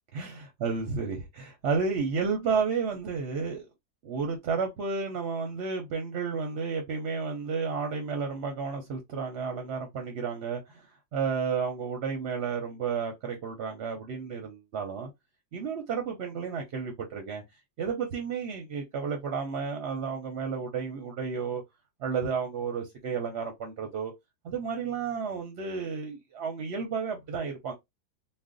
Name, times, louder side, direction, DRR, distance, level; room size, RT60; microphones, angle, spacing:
voice 1, 0.1-3.7 4.0-15.1 15.5-17.4 17.8-21.6 22.0-24.1 24.4-27.7, right 5 dB, 60° right, 0.8 m, -32 dB
2.4 x 2.2 x 3.7 m
omnidirectional pair, 1.6 m